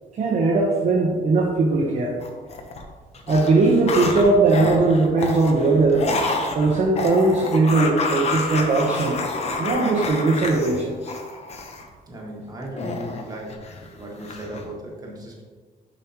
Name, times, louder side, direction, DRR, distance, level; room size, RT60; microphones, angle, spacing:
voice 1, 0.2-2.1 3.3-6.1 6.5-9.2 9.6-11.0, right 3 dB, 40° right, -3 dB, 0.8 m, -19 dB
sound 1, 2.2-2.8 3.1-11.8 12.8-13.9 14.2-14.6, left 3 dB, 40° left, 0.8 m, -28 dB
voice 2, 12.1-13.6 13.9-15.4, right 1 dB, 20° right, -2 dB, 1.4 m, -36 dB
7.0 x 5.1 x 2.9 m, 1.4 s
cardioid pair, 135°, 17 cm